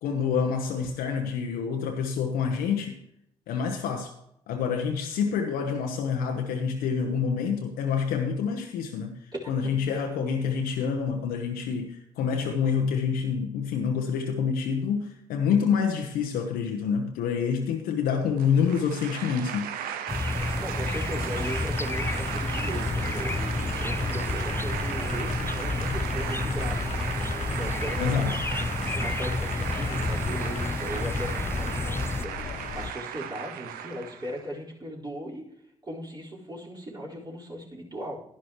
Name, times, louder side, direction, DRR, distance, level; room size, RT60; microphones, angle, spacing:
voice 1, 0.0-3.0 3.5-4.1 4.5-9.2 9.5-19.7 28.0-28.3, left 6 dB, 75° left, 1.0 m, -27 dB
sound 1, 18.4-34.4, right 9 dB, 75° right, 0.8 m, -36 dB
sound 2, 20.1-32.3, left 3 dB, 15° left, 0.4 m, -31 dB
voice 2, 20.6-26.9 27.5-28.4 28.9-35.5 35.8-38.2, right 1 dB, 25° right, 4.6 m, -38 dB
sound 3, 21.3-32.9, left 6 dB, 50° left, 0.7 m, -37 dB
11.5 x 11.5 x 3.1 m
hypercardioid pair, 45°, 15 cm